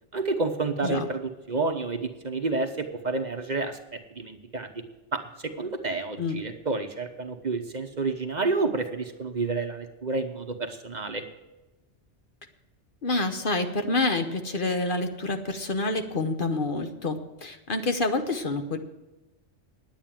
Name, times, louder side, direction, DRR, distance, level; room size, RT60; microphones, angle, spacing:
voice 1, 0.1-3.8 4.1-4.7 5.1-5.2 5.6-11.2, right 3 dB, 40° right, 7 dB, 1.0 m, -29 dB
voice 2, 13.0-18.8, left 2 dB, 50° left, 6 dB, 1.1 m, -27 dB
10.0 x 9.0 x 7.5 m, 1.0 s
omnidirectional pair, 1.2 m